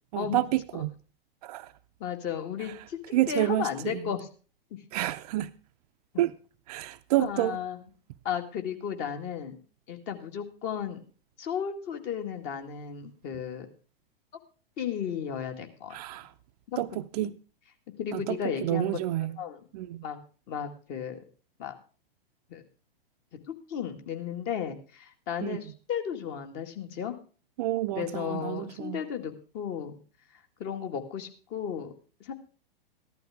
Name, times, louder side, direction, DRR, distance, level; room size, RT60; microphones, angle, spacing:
voice 1, 0.1-1.0 1.4-1.7 3.1-4.0 4.9-5.5 6.2-6.3 6.7-7.6 15.9-16.3 16.8-17.3 18.1-19.4 19.7-20.0 25.4-25.6 27.6-29.0, right 15 dB, 40° right, 0.6 m, -29 dB
voice 2, 2.0-4.3 6.1-6.2 7.2-7.8 8.2-9.6 9.9-11.0 11.4-13.7 14.8-15.9 16.7-16.8 17.2-17.3 18.0-19.0 19.4-19.6 20.0-20.2 20.5-21.2 21.6-21.8 22.5-22.6 23.3-27.2 27.9-30.0 30.6-31.9 32.2-32.3, left 8 dB, 35° left, 1.9 m, -34 dB
14.5 x 12.0 x 3.5 m
figure-of-eight pair, 110°, 30 cm